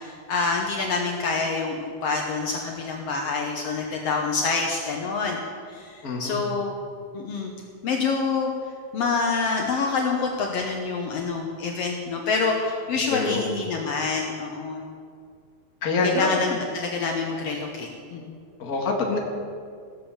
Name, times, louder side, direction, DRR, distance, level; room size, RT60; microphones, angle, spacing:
voice 1, 0.0-5.4 5.7-6.7 7.1-7.5 7.8-8.5 8.9-14.8 16.0-18.4, left 4 dB, 90° left, 1 dB, 1.4 m, -27 dB
voice 2, 6.0-6.5 13.1-13.4 15.8-16.6 18.6-19.2, left 3 dB, 45° left, 0 dB, 1.2 m, -25 dB
16.5 x 7.2 x 7.2 m, 2.2 s
omnidirectional pair, 4.2 m